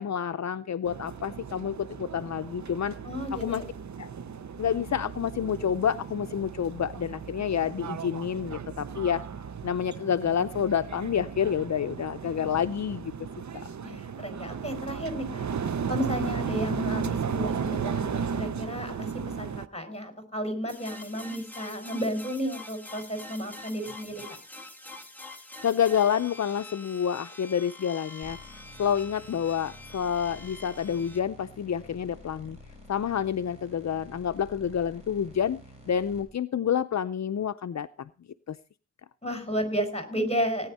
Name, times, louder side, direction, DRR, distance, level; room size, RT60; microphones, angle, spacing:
voice 1, 0.0-3.0 3.3-3.6 4.0-4.1 4.6-9.2 9.6-13.1 13.5-13.7 25.6-32.6 32.9-35.6 35.9-38.1 38.5-38.6, left 8 dB, 65° left, 11 dB, 0.5 m, -28 dB
sound 1, 0.8-19.7, right 6 dB, 70° right, 0.7 m, -35 dB
voice 2, 3.0-3.7 13.8-15.5 15.9-19.1 19.4-24.2 39.2-40.7, equal, 20° left, 7 dB, 4.8 m, -32 dB
sound 2, 20.7-31.2, left 2 dB, 5° left, 2.6 m, -46 dB
sound 3, 28.2-36.2, left 1 dB, 20° right, 7.8 m, -50 dB
18.5 x 9.8 x 4.1 m, 0.35 s
wide cardioid pair, 80°, 29 cm